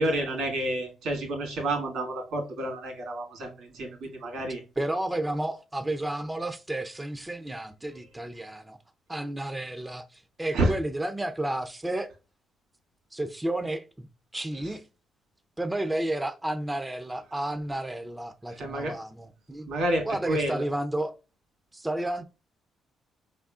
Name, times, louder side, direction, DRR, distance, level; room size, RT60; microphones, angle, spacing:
voice 1, 0.0-4.6 10.5-10.7 18.5-19.0 19.7-20.6, right 1 dB, 85° right, 1.8 m, -29 dB
voice 2, 4.8-8.8 9.1-12.1 13.1-14.8 15.6-19.7 20.0-21.1 21.7-22.2, right 1 dB, 10° right, 0.5 m, -32 dB
5.0 x 3.6 x 2.4 m
cardioid pair, 90°, 0 cm